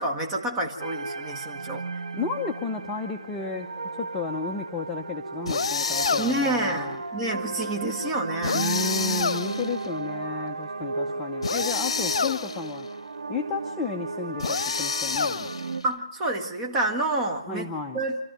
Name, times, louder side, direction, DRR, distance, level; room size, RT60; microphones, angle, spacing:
voice 1, 0.0-1.8 6.2-8.7 11.1-11.2 15.8-17.7 17.9-18.2, right 2 dB, 15° right, 2 dB, 1.7 m, -28 dB
sound 1, 0.8-15.8, right 3 dB, 85° right, 1.4 m, -34 dB
voice 2, 2.1-7.0 8.5-12.9 13.3-15.5 17.5-18.0, left 5 dB, 10° left, 0 dB, 0.7 m, -33 dB
sound 2, 5.5-6.6 8.4-9.9 11.4-12.7 14.4-15.8, left 5 dB, 60° left, 1.0 m, -28 dB
27.0 x 13.5 x 9.1 m, 1.0 s
hypercardioid pair, 160°, 3 cm